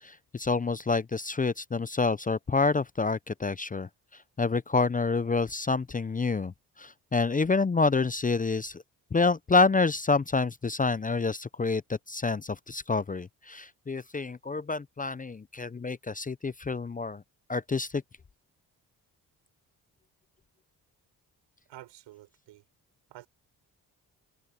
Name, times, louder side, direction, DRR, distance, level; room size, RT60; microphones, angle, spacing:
voice 1, 0.0-3.9 4.4-8.8 9.1-17.2 17.5-18.0, left 4 dB, 20° left, 0.5 m, -28 dB
voice 2, 21.7-22.6 23.1-23.3, right 15 dB, 90° right, 6.5 m, -49 dB
supercardioid pair, 60°, 42 cm